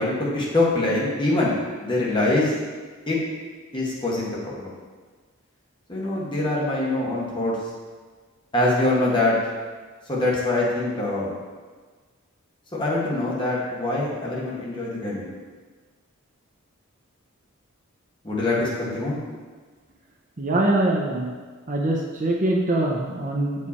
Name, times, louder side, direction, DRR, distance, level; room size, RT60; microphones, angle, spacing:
voice 1, 0.0-2.5 3.1-3.2 3.7-4.7 5.9-7.6 8.5-9.4 10.1-11.3 12.7-15.3 18.2-19.2, left 2 dB, 25° left, -5 dB, 1.4 m, -24 dB
voice 2, 20.4-21.3 21.7-23.7, right 1 dB, 35° right, -1 dB, 0.7 m, -23 dB
6.9 x 4.8 x 4.3 m, 1.4 s
head